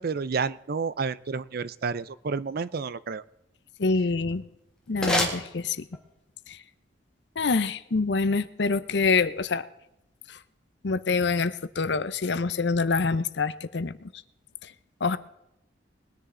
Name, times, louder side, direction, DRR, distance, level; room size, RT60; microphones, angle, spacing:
voice 1, 0.0-3.2, right 5 dB, 55° right, 17 dB, 0.5 m, -30 dB
voice 2, 3.8-4.4 4.9-5.8 7.4-9.6 10.8-13.9 15.0-15.2, left 4 dB, 65° left, 15 dB, 0.7 m, -25 dB
sound 1, 4.1-6.2, left 1 dB, 5° left, 2.0 m, -31 dB
21.0 x 10.0 x 3.8 m, 0.85 s
head